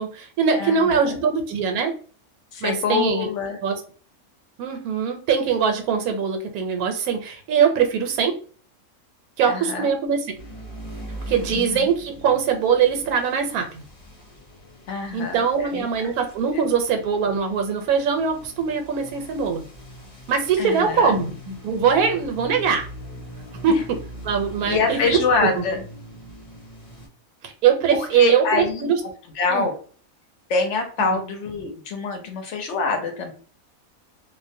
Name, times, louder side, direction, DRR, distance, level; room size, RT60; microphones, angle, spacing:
voice 1, 0.0-1.9 2.6-3.3 3.6-3.8 4.6-8.3 9.4-10.2 11.3-13.8 15.1-19.6 20.3-22.9 23.6-24.0 24.2-25.6 27.4-29.0 29.5-29.7 31.1-31.2, right 6 dB, 90° right, 5 dB, 1.1 m, -22 dB
voice 2, 0.5-1.2 2.5-3.6 9.4-9.9 11.5-12.0 14.9-16.1 16.5-16.7 20.6-21.2 23.7-23.8 24.6-25.8 27.9-28.9 29.3-29.7 30.5-33.3, left 4 dB, 65° left, 4 dB, 0.8 m, -25 dB
sound 1, 10.4-27.1, equal, 35° left, 0.8 m, -41 dB
2.4 x 2.0 x 2.5 m, 0.42 s
omnidirectional pair, 1.5 m